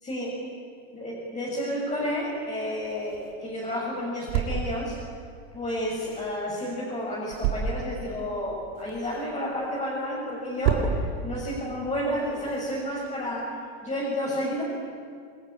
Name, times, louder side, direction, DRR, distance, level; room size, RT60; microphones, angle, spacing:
voice 1, 0.0-0.4 0.9-5.0 5.5-13.5 13.8-14.6, equal, 20° left, -4 dB, 6.3 m, -31 dB
sound 1, 2.1-13.3, right 7 dB, 75° right, 6.2 m, -34 dB
25.5 x 21.5 x 10.0 m, 2.3 s
supercardioid pair, 140°, 38 cm